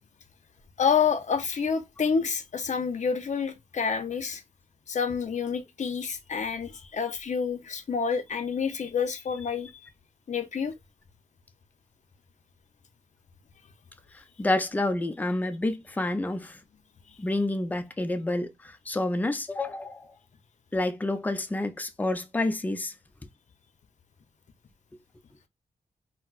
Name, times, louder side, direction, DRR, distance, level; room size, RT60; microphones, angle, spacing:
voice 1, 0.8-4.4 4.9-9.8 10.3-10.7 17.1-17.2, left 6 dB, 55° left, 0.6 m, -28 dB
voice 2, 14.1-16.6 17.2-20.1 20.7-22.9, left 2 dB, 10° left, 0.4 m, -29 dB
4.1 x 2.0 x 2.4 m
cardioid pair, 65°, 15 cm